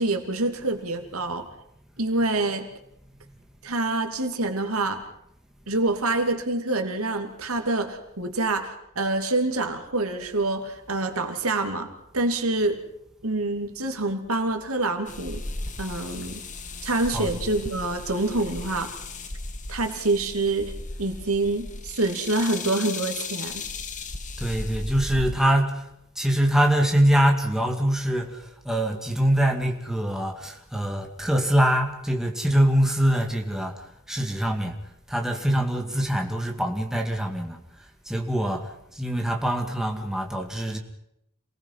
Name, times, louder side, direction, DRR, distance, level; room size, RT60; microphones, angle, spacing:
voice 1, 0.0-1.5 2.0-2.7 3.6-5.0 5.7-12.8 13.2-15.4 15.8-16.4 16.8-18.9 19.7-20.7 21.0-23.6, right 2 dB, 80° right, 6 dB, 2.7 m, -26 dB
sound 1, 15.1-25.3, left 3 dB, 35° left, 1.6 m, -36 dB
voice 2, 24.4-25.8 26.2-34.8 35.1-37.6 38.1-40.8, right 1 dB, ahead, 2 dB, 2.3 m, -24 dB
27.5 x 19.5 x 5.8 m, 0.78 s
head